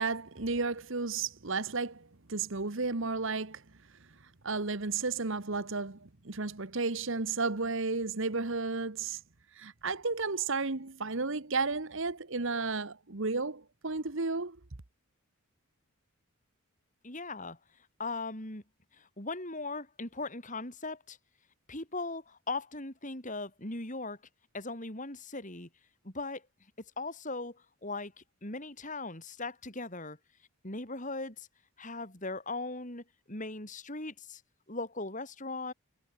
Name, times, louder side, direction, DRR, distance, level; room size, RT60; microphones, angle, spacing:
voice 1, 0.0-3.6 4.4-9.2 9.5-14.6, right 4 dB, 60° right, 1.3 m, -33 dB
voice 2, 17.0-17.6 18.0-18.6 18.9-21.2 21.7-24.2 24.5-25.7 26.0-26.4 27.0-30.2 30.6-31.5 31.8-34.4 34.7-35.7, left 3 dB, 35° left, 4.3 m, -39 dB
head